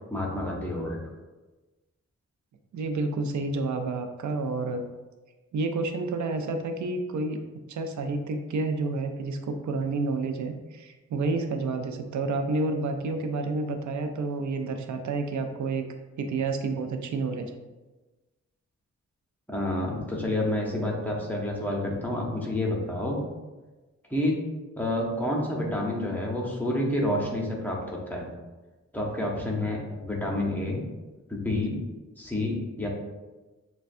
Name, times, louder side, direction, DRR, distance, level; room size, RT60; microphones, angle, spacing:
voice 1, 0.1-1.0 19.5-23.2 24.1-24.4 24.8-28.3 28.9-30.8 31.3-31.8 32.2-32.9, left 1 dB, 5° left, -2 dB, 0.7 m, -29 dB
voice 2, 2.7-4.8 5.5-7.4 7.7-15.9 16.2-17.5, right 3 dB, 75° right, 6 dB, 0.5 m, -29 dB
6.7 x 2.2 x 2.5 m, 1.2 s
wide cardioid pair, 175°, 29 cm